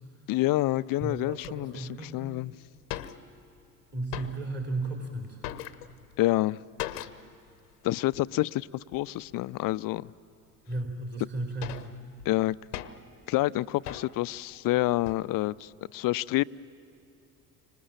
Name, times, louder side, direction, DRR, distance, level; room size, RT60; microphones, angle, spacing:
voice 1, 0.3-2.5 6.2-6.6 7.8-10.1 12.3-12.6 13.3-16.4, left 17 dB, 45° left, 0.6 m, -28 dB
voice 2, 1.0-2.3 3.9-5.4 10.7-11.9, right 2 dB, 20° right, 3.7 m, -34 dB
sound 1, 1.4-1.5 2.2-2.3 2.5-2.6 2.8-3.6 3.9-4.7 5.0-6.2 6.8-7.4 7.7-7.8 8.1-8.3 8.9-9.4 10.0-10.1 10.8-10.9 11.3-13.2 13.9-14.3 14.8-15.3, left 12 dB, 80° left, 0.9 m, -40 dB
30.0 x 26.0 x 7.4 m
hypercardioid pair, 55°, 47 cm